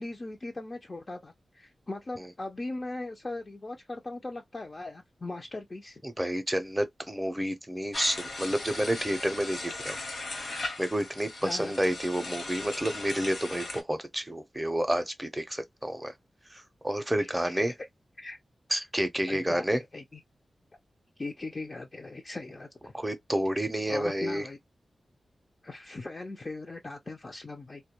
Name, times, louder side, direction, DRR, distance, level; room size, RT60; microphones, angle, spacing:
voice 1, 0.0-6.0 11.4-11.7 17.2-17.7 18.2-18.4 19.3-20.2 21.2-22.9 23.9-24.6 25.6-27.8, left 2 dB, 35° left, 0.4 m, -39 dB
voice 2, 6.0-10.0 10.3-16.1 16.5-17.7 18.7-19.8 22.9-24.4, right 1 dB, 10° right, 0.5 m, -30 dB
sound 1, 7.9-13.8, left 2 dB, 70° left, 0.9 m, -38 dB
2.2 x 2.1 x 2.8 m
wide cardioid pair, 85°, 0 cm